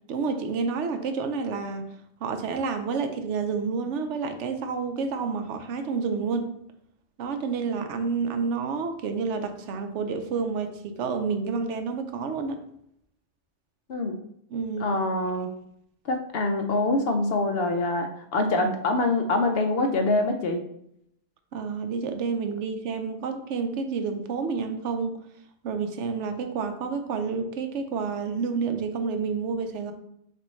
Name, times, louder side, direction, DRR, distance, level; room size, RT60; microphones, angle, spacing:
voice 1, 0.1-1.9 2.2-6.5 7.2-12.6 14.5-14.9 21.5-25.2 25.6-29.9, right 5 dB, 80° right, 7 dB, 0.9 m, -29 dB
voice 2, 14.8-15.5 16.0-20.6, left 2 dB, 65° left, 5 dB, 0.8 m, -25 dB
6.6 x 2.5 x 3.1 m, 0.73 s
omnidirectional pair, 1.2 m